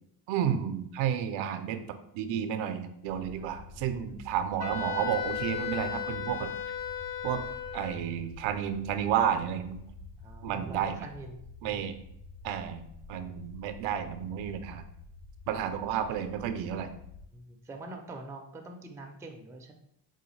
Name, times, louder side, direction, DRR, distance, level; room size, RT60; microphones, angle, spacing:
voice 1, 0.3-6.5 7.2-7.4 7.7-9.8 10.4-11.0 11.6-11.9 12.4-12.8 13.1-14.8 15.5-16.9, right 9 dB, 70° right, 9 dB, 0.5 m, -31 dB
sound 1, 3.0-17.3, left 2 dB, 70° left, 0.9 m, -49 dB
voice 2, 3.4-4.2 10.2-11.9 15.5-15.8 17.3-19.7, right 2 dB, 5° right, 3 dB, 0.4 m, -45 dB
Wind instrument woodwind instrument, 4.6-8.1, left 8 dB, 45° left, 0.6 m, -35 dB
3.9 x 2.2 x 3.1 m, 0.76 s
supercardioid pair, 80°, 47 cm